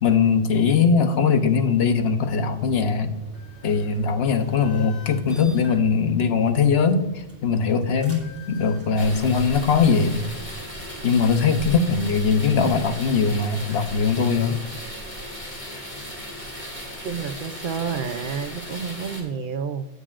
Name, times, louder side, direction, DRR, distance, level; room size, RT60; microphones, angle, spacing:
voice 1, 0.0-3.1 3.6-7.1 7.4-10.2 11.0-14.6, left 5 dB, 70° left, 8 dB, 1.1 m, -20 dB
sound 1, 1.9-12.5, equal, 10° right, 2.8 m, -46 dB
sound 2, 9.0-19.2, equal, 30° left, 2.5 m, -36 dB
voice 2, 17.0-19.9, right 6 dB, 55° right, 9 dB, 0.7 m, -29 dB
17.5 x 6.7 x 2.5 m, 0.99 s
omnidirectional pair, 1.1 m